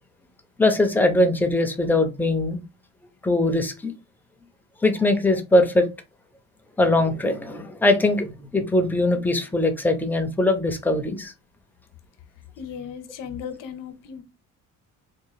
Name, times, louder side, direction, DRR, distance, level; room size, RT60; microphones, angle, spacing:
voice 1, 0.6-2.6 3.2-3.9 4.8-5.9 6.8-11.3, left 2 dB, 5° left, 0.5 m, -21 dB
voice 2, 12.6-14.2, left 7 dB, 80° left, 0.8 m, -36 dB
3.6 x 2.5 x 3.1 m
cardioid pair, 150°, 32 cm